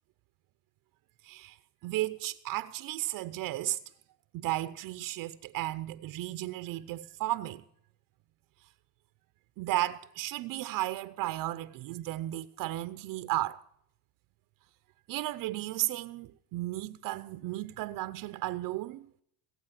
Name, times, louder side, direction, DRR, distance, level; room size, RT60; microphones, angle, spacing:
voice 1, 1.2-1.6 1.8-3.8 4.3-7.6 9.6-13.6 15.1-19.1, right 16 dB, 50° right, 0.7 m, -34 dB
19.5 x 8.6 x 7.4 m
cardioid pair, 135°, 42 cm